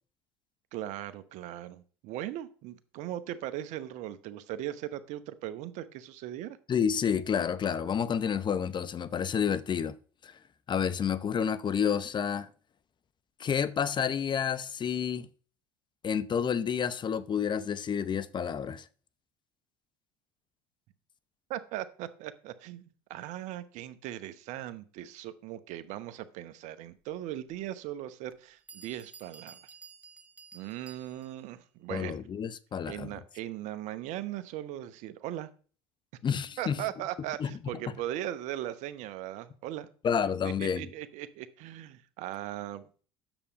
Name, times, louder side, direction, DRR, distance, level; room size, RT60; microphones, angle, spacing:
voice 1, 0.7-6.6 21.5-29.6 30.5-32.2 32.8-35.5 36.6-39.9 40.4-42.9, right 13 dB, 65° right, 0.9 m, -39 dB
voice 2, 6.7-9.9 10.2-10.3 10.7-12.5 13.4-15.3 16.0-18.8 31.9-33.1 36.2-36.8 37.4-37.5 40.0-40.9, left 7 dB, 35° left, 0.7 m, -29 dB
Bell, 28.3-28.4 28.7-31.5, right 5 dB, 10° right, 1.3 m, -52 dB
9.0 x 7.0 x 5.1 m
hypercardioid pair, 75°, 13 cm